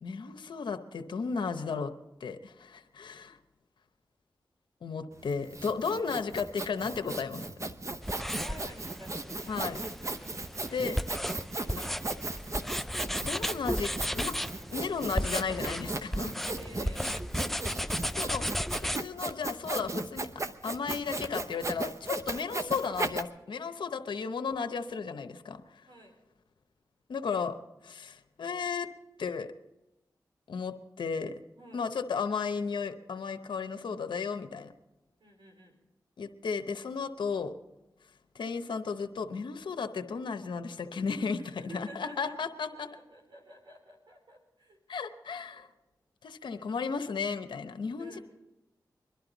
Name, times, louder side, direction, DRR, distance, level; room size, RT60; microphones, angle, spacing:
voice 1, 0.0-1.9 2.2-3.4 4.8-7.5 9.5-9.8 10.7-11.0 11.7-11.8 13.2-14.3 14.7-16.3 17.6-17.8 18.1-18.5 18.9-20.3 20.6-25.9 27.1-27.5 27.8-28.9 29.2-29.5 30.5-31.4 31.7-34.7 36.2-37.5 38.3-42.9 44.9-45.7 46.2-48.2, left 5 dB, 90° left, 8 dB, 0.8 m, -34 dB
Sawing, 5.2-23.2, right 2 dB, 40° right, 0.9 m, -36 dB
sound 1, 8.0-19.0, equal, 5° left, 0.5 m, -35 dB
voice 2, 8.1-11.0 16.4-17.2 25.9-26.2 31.6-31.8 35.2-35.8 41.4-42.4 42.7-44.8 45.5-45.7 48.0-48.2, right 1 dB, 85° right, 2 dB, 3.7 m, -51 dB
22.5 x 11.5 x 4.0 m, 0.96 s
cardioid pair, 45°, 8 cm